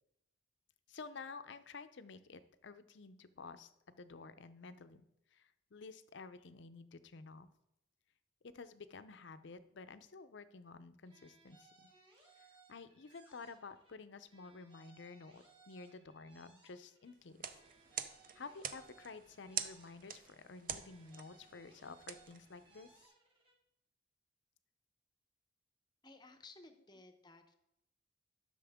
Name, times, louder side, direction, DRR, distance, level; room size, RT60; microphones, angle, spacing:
voice 1, 0.9-5.0 5.3-7.5 8.4-11.9 12.4-17.6 18.4-23.1, left 4 dB, 65° left, 12 dB, 0.6 m, -52 dB
sound 1, 11.0-14.0 14.2-17.2 17.4-20.4 20.6-23.6, right 3 dB, 25° right, 1.8 m, -66 dB
sound 2, 17.3-23.1, right 9 dB, 45° right, 0.5 m, -46 dB
voice 2, 26.0-27.5, left 3 dB, 20° left, 7 dB, 0.7 m, -57 dB
11.5 x 6.4 x 3.5 m, 0.85 s
head